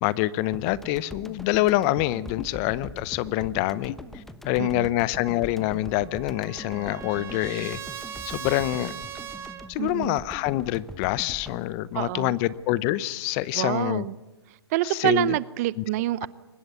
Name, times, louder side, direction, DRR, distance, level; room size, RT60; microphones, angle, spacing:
voice 1, 0.0-7.8 8.3-8.9 9.7-14.0 14.9-15.3 15.8-15.9, left 16 dB, 30° left, 20 dB, 0.7 m, -26 dB
sound 1, 0.5-13.0, left 1 dB, ahead, 0.9 m, -42 dB
Trumpet, 5.8-9.7, right 9 dB, 20° right, 1.5 m, -39 dB
voice 2, 9.8-10.2 11.9-12.4 13.5-14.1 14.5-16.3, right 17 dB, 35° right, 20 dB, 0.7 m, -27 dB
23.0 x 20.5 x 9.5 m, 1.1 s
hypercardioid pair, 140°, 14 cm